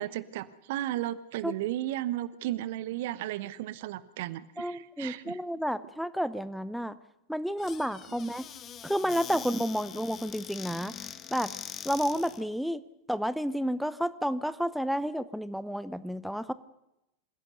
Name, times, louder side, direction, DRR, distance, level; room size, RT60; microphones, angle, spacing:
voice 1, 0.0-5.4, right 14 dB, 50° right, 17 dB, 0.9 m, -34 dB
voice 2, 4.6-7.0 7.3-8.5 8.8-10.9 11.3-11.5 11.8-12.8 13.1-16.5, equal, ahead, 15 dB, 0.8 m, -31 dB
Squeak / Cupboard open or close, 7.6-12.4, left 9 dB, 25° left, 1.3 m, -43 dB
26.0 x 16.5 x 6.8 m, 0.88 s
figure-of-eight pair, 90°, 0 cm